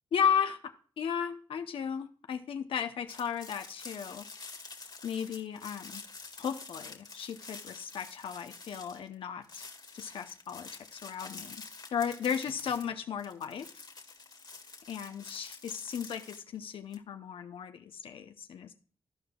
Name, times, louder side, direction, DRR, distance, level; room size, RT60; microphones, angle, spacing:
voice 1, 0.1-4.2 5.0-6.0 6.4-9.6 9.9-11.6 11.9-13.7 14.9-18.7, left 7 dB, 80° left, 7 dB, 0.7 m, -35 dB
sound 1, 3.1-9.1 9.4-17.0, left 4 dB, 50° left, 1.8 m, -48 dB
14.5 x 5.0 x 2.3 m, 0.43 s
cardioid pair, 60°, 9 cm